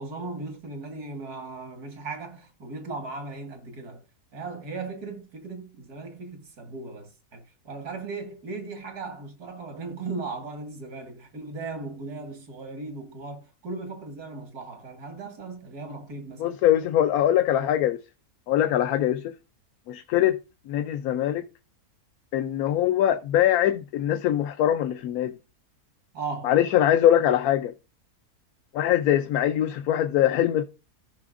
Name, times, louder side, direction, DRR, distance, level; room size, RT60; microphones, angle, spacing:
voice 1, 0.0-4.0 4.3-16.6 26.1-26.5, right 3 dB, 90° right, 2.3 m, -37 dB
voice 2, 16.4-18.0 18.5-19.3 19.9-20.4 20.7-21.4 22.3-25.3 26.4-27.7 28.7-30.6, left 11 dB, 75° left, 1.1 m, -22 dB
14.5 x 5.9 x 2.5 m
omnidirectional pair, 1.6 m